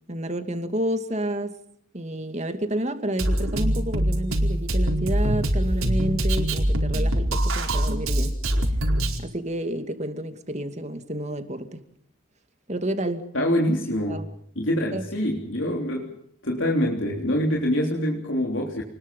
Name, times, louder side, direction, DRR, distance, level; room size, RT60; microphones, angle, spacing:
voice 1, 0.1-1.6 1.9-8.4 9.2-11.8 12.7-13.3 14.1-14.3 14.9-15.1, right 1 dB, 30° right, 2.5 m, -30 dB
Drum kit, 3.2-9.2, right 1 dB, 80° right, 4.7 m, -23 dB
voice 2, 13.3-14.2 14.6-16.2 16.4-18.8, equal, 65° left, 3.5 m, -25 dB
29.5 x 21.0 x 5.5 m
head